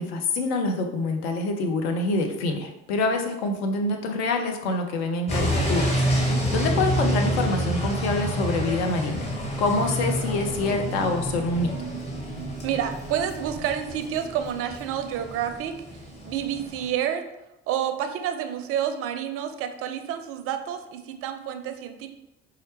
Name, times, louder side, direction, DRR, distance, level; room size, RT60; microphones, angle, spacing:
voice 1, 0.0-9.3 9.6-11.7, left 2 dB, 65° left, 5 dB, 0.6 m, -26 dB
sound 1, 5.3-16.9, equal, 20° left, 1.1 m, -28 dB
voice 2, 12.6-15.7 16.2-17.2 17.7-22.1, right 9 dB, 45° right, 8 dB, 0.4 m, -29 dB
4.2 x 2.4 x 3.0 m, 0.93 s
figure-of-eight pair, 55°, 33 cm